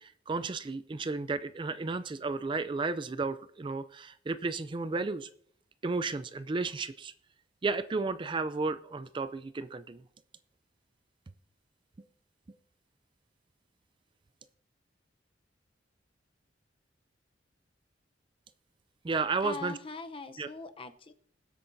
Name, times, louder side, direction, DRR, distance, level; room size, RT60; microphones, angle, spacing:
voice 1, 0.0-5.3 5.8-7.1 7.6-10.0 19.0-19.7 20.4-20.5, right 3 dB, 25° right, 13 dB, 0.4 m, -33 dB
voice 2, 19.4-21.1, left 4 dB, 30° left, 9 dB, 0.7 m, -41 dB
21.0 x 8.3 x 2.6 m, 0.63 s
head